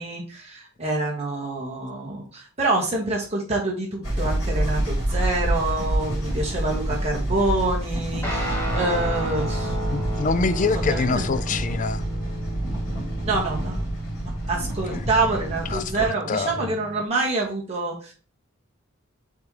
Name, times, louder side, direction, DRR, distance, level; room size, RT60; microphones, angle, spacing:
voice 1, 0.0-9.9 10.3-11.3 13.2-13.9 14.2-18.1, right 2 dB, 30° right, 2.0 m, -27 dB
sound 1, 4.0-16.1, right 1 dB, 85° left, 3.1 m, -28 dB
Guitar, 8.2-17.0, right 1 dB, 10° left, 1.4 m, -32 dB
voice 2, 9.9-12.0 14.9-15.0 15.7-16.7, left 4 dB, 35° left, 0.4 m, -26 dB
7.9 x 3.6 x 3.2 m
head